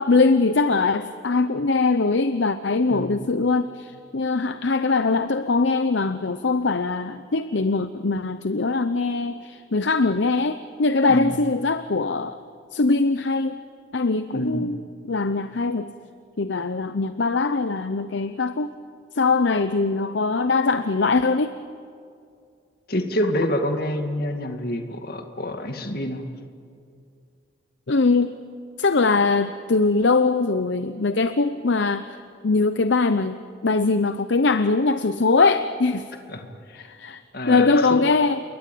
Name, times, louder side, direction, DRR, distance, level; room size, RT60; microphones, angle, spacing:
voice 1, 0.0-12.4 12.7-13.6 13.9-14.8 15.1-15.9 16.4-18.7 19.1-21.5 27.9-28.3 28.8-32.2 32.4-33.4 33.6-36.0 36.8-37.2 37.5-38.4, left 3 dB, 65° left, 11 dB, 0.7 m, -22 dB
voice 2, 14.3-14.7 22.9-26.2 36.3-36.9 37.3-38.0, left 1 dB, 50° left, 5 dB, 2.2 m, -27 dB
28.0 x 22.5 x 8.6 m, 2.4 s
head